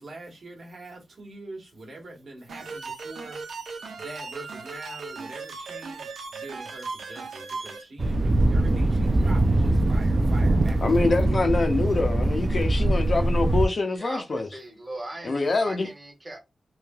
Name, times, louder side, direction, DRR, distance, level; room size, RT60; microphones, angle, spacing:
voice 1, 0.0-3.4 3.9-11.1, right 2 dB, 55° right, 1.1 m, -44 dB
sound 1, 2.5-7.8, right 4 dB, 90° right, 0.6 m, -37 dB
Thunder, 8.0-13.7, right 1 dB, 35° right, 0.3 m, -22 dB
voice 2, 10.8-14.5 15.2-15.9, left 3 dB, 40° left, 0.5 m, -25 dB
voice 3, 13.9-16.4, right 2 dB, 15° right, 0.7 m, -39 dB
3.1 x 2.7 x 2.2 m
wide cardioid pair, 170°, 0 cm